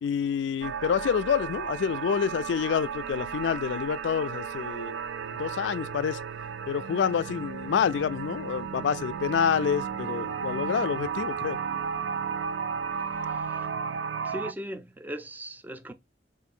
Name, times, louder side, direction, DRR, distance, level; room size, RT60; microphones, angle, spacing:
voice 1, 0.0-5.0 5.4-6.2 6.7-11.6, left 7 dB, 85° left, 0.3 m, -28 dB
sound 1, 0.6-14.5, right 6 dB, 85° right, 0.4 m, -34 dB
voice 2, 13.0-13.7 14.2-15.9, equal, 10° right, 0.4 m, -39 dB
3.6 x 2.5 x 4.1 m
head